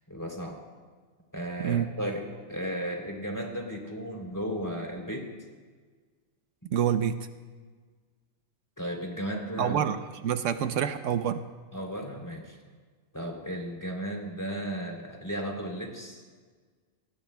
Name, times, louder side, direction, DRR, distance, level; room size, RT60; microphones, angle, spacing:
voice 1, 0.1-0.6 1.3-2.2 2.5-5.3 8.8-10.0 11.7-12.6 13.1-16.3, equal, 15° left, 0 dB, 3.2 m, -35 dB
voice 2, 6.7-7.3 9.6-10.0 10.2-11.4, right 9 dB, 80° right, 9 dB, 1.0 m, -27 dB
28.0 x 20.5 x 2.2 m, 1.5 s
omnidirectional pair, 1.3 m